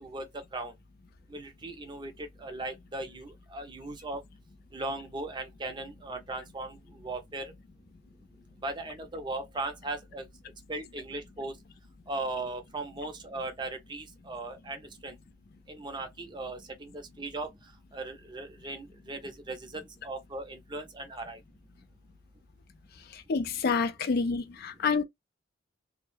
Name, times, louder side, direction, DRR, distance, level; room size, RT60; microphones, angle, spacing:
voice 1, 1.3-2.1 2.4-4.2 4.7-6.8 7.0-7.5 8.6-10.2 10.7-11.5 12.1-14.8 15.0-15.1 15.7-17.5 17.9-21.4, right 2 dB, 25° right, 0.5 m, -38 dB
voice 2, 23.1-25.0, left 5 dB, 50° left, 0.4 m, -28 dB
2.2 x 2.0 x 3.2 m
head